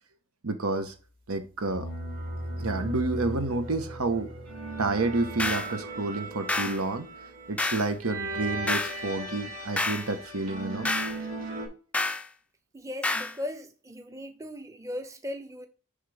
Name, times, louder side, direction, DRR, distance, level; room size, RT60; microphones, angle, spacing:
voice 1, 0.4-0.9 1.3-1.9 2.6-4.3 4.8-7.1 7.5-10.9, right 3 dB, 80° right, 1.3 m, -29 dB
sound 1, 1.6-11.7, right 1 dB, 40° right, 2.6 m, -37 dB
sound 2, 5.4-5.7 6.5-6.8 7.6-7.9 8.7-9.0 9.8-10.1 10.9-11.2 11.9-12.3 13.0-13.4, left 2 dB, 5° left, 0.4 m, -28 dB
voice 2, 12.7-15.7, left 1 dB, 15° right, 0.7 m, -38 dB
10.0 x 3.7 x 3.5 m
head